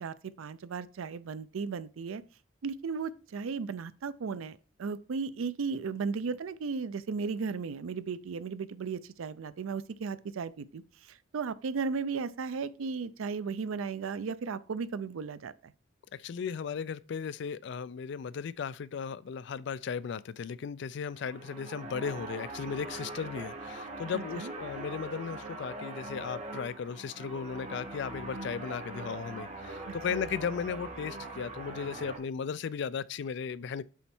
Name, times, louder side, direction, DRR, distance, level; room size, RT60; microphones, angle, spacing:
voice 1, 0.0-2.2 2.6-15.7 24.1-24.5 29.9-30.2, right 5 dB, 85° right, 0.4 m, -35 dB
voice 2, 16.1-33.8, left 6 dB, 55° left, 0.3 m, -36 dB
sound 1, 21.1-32.2, right 2 dB, 35° right, 1.1 m, -42 dB
7.1 x 4.4 x 4.3 m
head